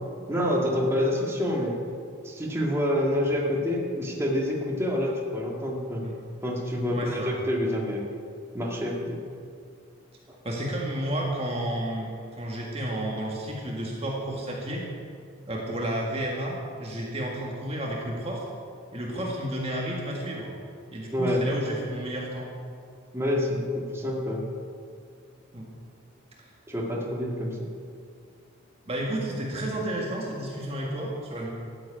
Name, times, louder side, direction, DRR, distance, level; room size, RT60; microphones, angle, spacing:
voice 1, 0.3-1.8 2.2-6.1 6.4-8.0 8.5-9.2 10.3-10.4 21.1-21.4 23.1-24.5 26.7-27.6, left 1 dB, 10° right, -3 dB, 1.9 m, -27 dB
voice 2, 6.9-7.3 10.4-14.8 15.5-18.5 18.9-20.5 20.9-22.5 25.5-25.7 26.4-26.5 28.9-31.5, right 1 dB, 30° right, -2 dB, 1.7 m, -31 dB
13.5 x 7.9 x 8.8 m, 2.3 s
head